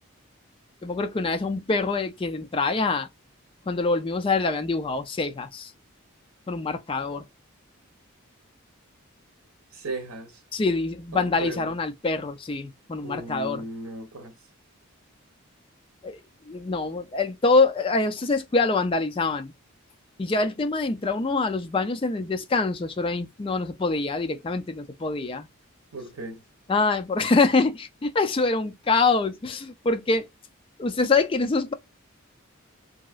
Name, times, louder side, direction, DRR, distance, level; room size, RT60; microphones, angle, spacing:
voice 1, 0.8-3.1 3.7-5.7 6.5-7.2 10.5-13.6 16.0-19.5 20.2-25.5 26.7-30.3 30.8-31.7, left 3 dB, 25° left, 0.3 m, -25 dB
voice 2, 9.7-10.4 11.1-11.7 13.0-14.3 25.9-26.4, right 2 dB, 75° right, 0.8 m, -36 dB
3.0 x 2.8 x 2.3 m
head